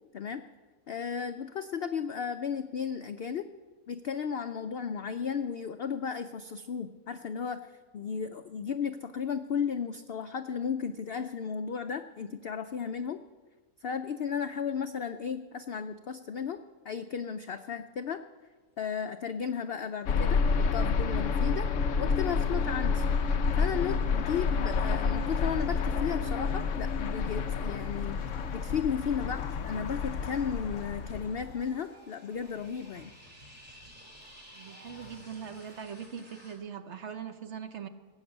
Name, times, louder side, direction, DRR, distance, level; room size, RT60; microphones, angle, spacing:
voice 1, 0.9-3.5 3.9-13.2 13.8-18.2 18.8-20.4 20.7-21.7 22.0-23.1 23.6-28.2 28.5-33.1, left 7 dB, 80° left, 9 dB, 0.5 m, -34 dB
sound 1, 20.1-31.6, left 5 dB, 60° left, 1.0 m, -29 dB
sound 2, 21.7-36.5, equal, 5° right, 3.7 m, -58 dB
sound 3, 22.1-35.8, equal, 85° right, 3.3 m, -57 dB
voice 2, 34.5-37.9, right 7 dB, 50° right, 8 dB, 1.0 m, -41 dB
18.0 x 8.0 x 8.0 m, 1.4 s
omnidirectional pair, 1.6 m